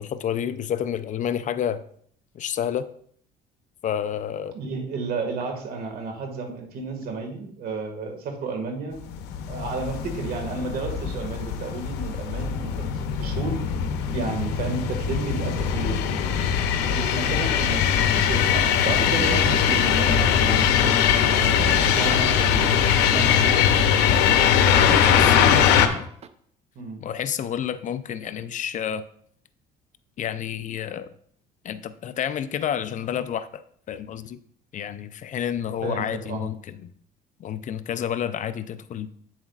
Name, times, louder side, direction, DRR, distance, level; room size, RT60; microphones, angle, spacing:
voice 1, 0.0-1.8 2.3-2.9 3.8-4.6 24.8-26.1 27.0-29.0 30.2-31.1 31.6-33.6 33.9-34.4 34.7-36.9 37.4-39.1, left 9 dB, 50° left, 13 dB, 0.5 m, -29 dB
voice 2, 4.5-9.0 9.5-12.9 13.2-13.6 14.1-16.0 16.9-17.8 18.1-20.6 21.3-22.8 24.7-25.9 26.8-27.0 35.8-36.5, right 4 dB, 65° right, 4 dB, 1.9 m, -32 dB
sound 1, 9.1-25.9, left 8 dB, 90° left, 0.7 m, -21 dB
sound 2, 17.9-24.0 24.3-25.1 25.5-26.3, right 7 dB, 40° right, 0.5 m, -36 dB
8.7 x 7.4 x 2.4 m, 0.62 s
cardioid pair, 110°, 17 cm